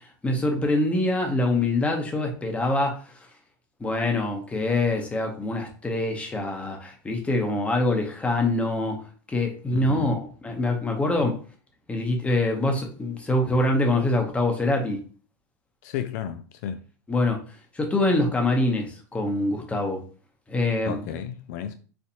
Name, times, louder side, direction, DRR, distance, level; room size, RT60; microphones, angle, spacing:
voice 1, 0.2-3.0 3.8-9.0 9.3-11.4 11.9-15.0 17.1-17.4 17.7-20.0 20.5-21.0, left 2 dB, 15° left, 0.9 m, -24 dB
voice 2, 9.7-10.2 11.2-11.4 15.8-16.8 20.9-21.7, left 9 dB, 65° left, 0.4 m, -33 dB
4.2 x 2.5 x 2.8 m
supercardioid pair, 115°, 10 cm